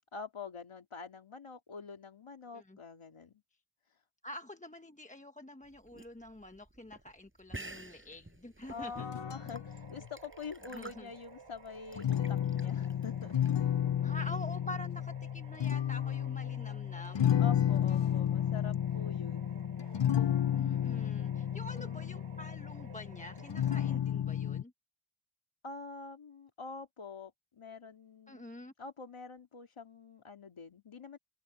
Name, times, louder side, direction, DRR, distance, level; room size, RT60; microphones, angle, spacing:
voice 1, 0.1-3.4 3.9-4.0 8.7-13.4 17.4-19.6 25.6-28.5 28.8-31.2, left 4 dB, 85° left, 2.6 m, -46 dB
voice 2, 4.2-9.1 10.7-11.1 14.0-17.4 20.5-24.7 28.3-28.7, left 1 dB, 15° left, 1.1 m, -47 dB
sound 1, 5.7-13.6, right 2 dB, 25° right, 7.0 m, -50 dB
sound 2, 8.6-24.0, right 5 dB, 80° right, 2.8 m, -55 dB
sound 3, 9.0-10.1 12.0-24.6, left 10 dB, 60° left, 0.7 m, -32 dB
wide cardioid pair, 70°, 48 cm